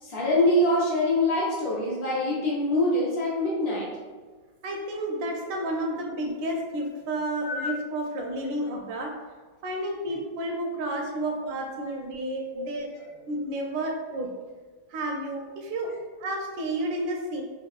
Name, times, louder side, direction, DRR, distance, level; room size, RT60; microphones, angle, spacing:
voice 1, 0.0-3.9 7.4-7.7 12.5-12.6, left 1 dB, 65° left, -5 dB, 1.0 m, -24 dB
voice 2, 4.6-9.2 9.6-14.3 14.9-15.9 16.2-17.4, right 1 dB, 85° right, 1 dB, 1.3 m, -31 dB
3.5 x 2.3 x 2.3 m, 1.4 s
omnidirectional pair, 2.0 m